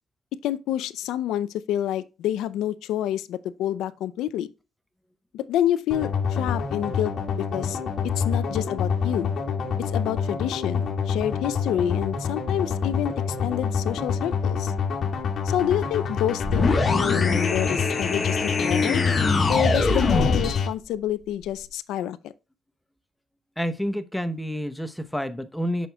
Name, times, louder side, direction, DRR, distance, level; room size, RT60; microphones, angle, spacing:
voice 1, 0.4-4.5 5.3-7.8 8.0-9.3 9.8-14.7 15.4-19.0 19.5-22.3, left 11 dB, 85° left, 0.5 m, -28 dB
sound 1, 5.9-20.7, left 6 dB, 60° left, 1.9 m, -27 dB
sound 2, 16.4-20.6, left 3 dB, 30° left, 1.3 m, -24 dB
voice 2, 23.6-25.9, equal, 5° left, 0.8 m, -29 dB
7.7 x 6.3 x 2.3 m
cardioid pair, 90°, 0 cm